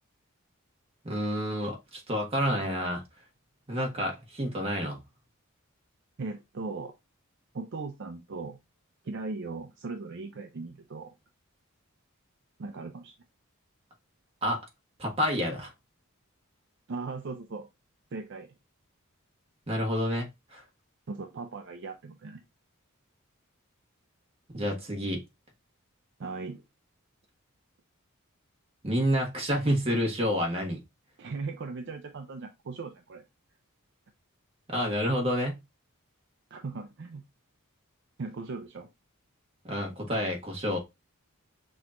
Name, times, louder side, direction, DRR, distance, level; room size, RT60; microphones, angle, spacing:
voice 1, 1.0-3.0 3.7-5.0 14.4-14.6 15.0-15.7 19.7-20.6 24.5-25.2 28.8-30.8 34.7-35.6 39.6-40.8, equal, 25° right, 1.5 m, -29 dB
voice 2, 6.2-6.9 7.5-8.6 9.0-11.1 12.6-13.1 16.9-17.7 18.1-18.5 21.1-22.4 26.2-26.6 31.2-33.2 36.5-37.2 38.2-38.9, right 3 dB, 55° right, 0.5 m, -38 dB
6.2 x 2.9 x 2.4 m
head